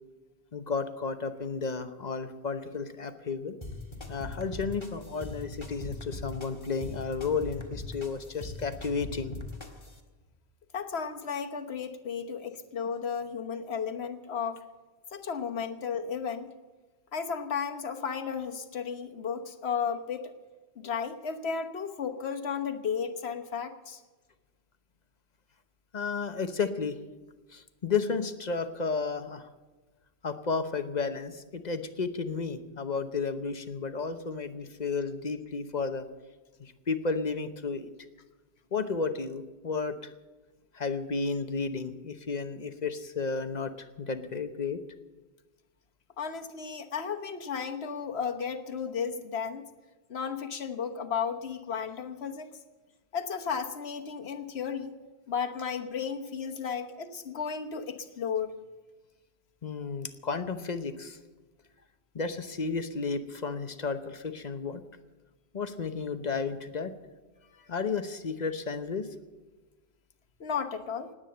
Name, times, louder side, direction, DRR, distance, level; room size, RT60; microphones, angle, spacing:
voice 1, 0.5-3.6 4.1-9.3 25.9-27.0 27.5-29.5 30.2-36.1 36.6-37.9 38.7-40.1 40.7-44.8 59.6-61.2 62.1-64.8 65.5-66.9 67.7-69.1, left 4 dB, 45° left, 9 dB, 1.0 m, -32 dB
sound 1, 3.6-10.0, left 2 dB, 25° left, 1.7 m, -41 dB
voice 2, 10.7-14.6 15.1-16.5 17.1-20.3 20.8-24.0 46.2-49.6 50.1-52.5 53.1-54.9 55.3-58.5 67.5-67.7 70.4-71.1, left 6 dB, 75° left, 6 dB, 1.4 m, -34 dB
19.0 x 9.0 x 7.8 m, 1.2 s
omnidirectional pair, 1.1 m